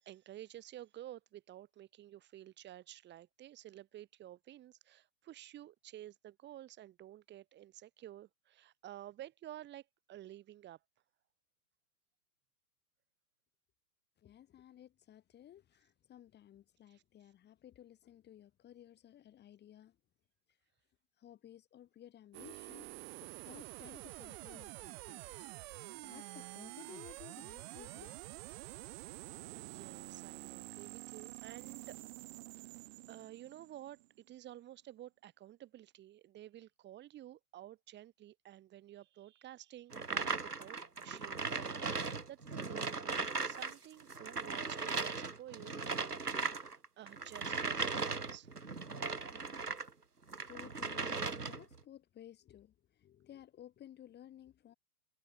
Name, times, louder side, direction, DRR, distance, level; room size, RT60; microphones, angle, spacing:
voice 1, 0.0-10.8 16.9-17.0 29.5-32.0 32.5-32.8 33.1-46.1 46.4-48.6, right 13 dB, 25° right, 3.1 m, -52 dB
voice 2, 14.2-20.0 20.5-20.6 21.2-25.2 26.0-28.2 50.4-54.7, left 11 dB, 20° left, 5.0 m, -56 dB
sound 1, 22.3-34.3, right 23 dB, 40° right, 5.5 m, -48 dB
sound 2, 39.9-43.7 44.0-49.9 50.3-51.7, right 4 dB, 90° right, 1.4 m, -38 dB
figure-of-eight pair, 105°, 45 cm